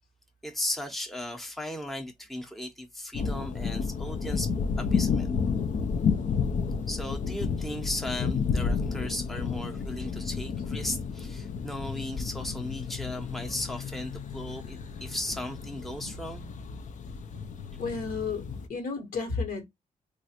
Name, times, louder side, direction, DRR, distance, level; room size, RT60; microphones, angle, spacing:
voice 1, 0.4-4.5 4.8-5.3 6.9-16.5, left 1 dB, ahead, 0.7 m, -36 dB
sound 1, 3.1-18.7, left 5 dB, 55° left, 0.5 m, -31 dB
voice 2, 17.8-19.7, left 4 dB, 75° left, 1.4 m, -32 dB
3.0 x 2.5 x 2.8 m
cardioid pair, 85°, 15 cm